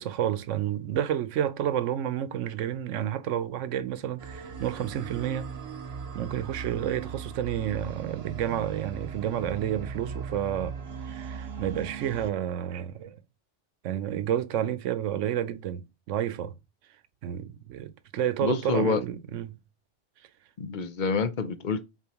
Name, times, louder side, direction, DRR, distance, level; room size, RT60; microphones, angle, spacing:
voice 1, 0.0-5.5 6.1-13.2 13.8-16.5 17.2-19.6, right 10 dB, 85° right, 1.0 m, -30 dB
sound 1, 4.2-12.3, right 6 dB, 60° right, 1.1 m, -38 dB
voice 2, 18.4-19.0 20.6-21.9, left 5 dB, 50° left, 0.7 m, -27 dB
7.0 x 4.5 x 3.0 m
omnidirectional pair, 1.2 m